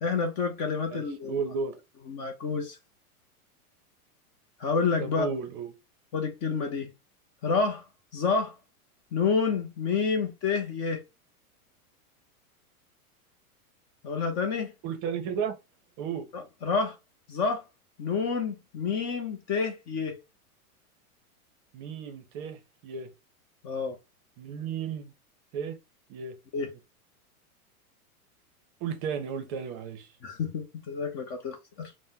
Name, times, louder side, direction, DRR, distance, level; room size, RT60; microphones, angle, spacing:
voice 1, 0.0-1.5 2.1-2.8 4.6-5.3 6.1-6.9 7.4-7.8 8.1-8.5 9.1-11.0 14.0-14.7 16.3-17.0 17.3-17.6 18.0-20.2 23.6-24.0 26.5-26.7 30.2-31.9, left 5 dB, 30° left, 0.5 m, -29 dB
voice 2, 0.9-1.8 5.0-5.7 14.8-15.5 16.0-16.3 21.7-23.1 24.4-25.1 25.5-25.8 26.1-26.4 28.8-30.1, right 6 dB, 35° right, 0.6 m, -33 dB
3.4 x 2.1 x 2.7 m
hypercardioid pair, 135°, 45 cm